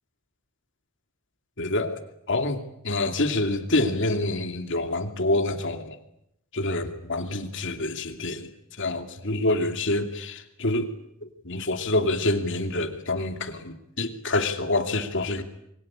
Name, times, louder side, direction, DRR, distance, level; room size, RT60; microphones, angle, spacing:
voice 1, 1.6-2.0 2.3-6.0 6.5-8.5 8.8-10.9 11.2-15.4, left 2 dB, 55° left, 7 dB, 2.7 m, -27 dB
27.5 x 23.5 x 8.8 m, 0.78 s
head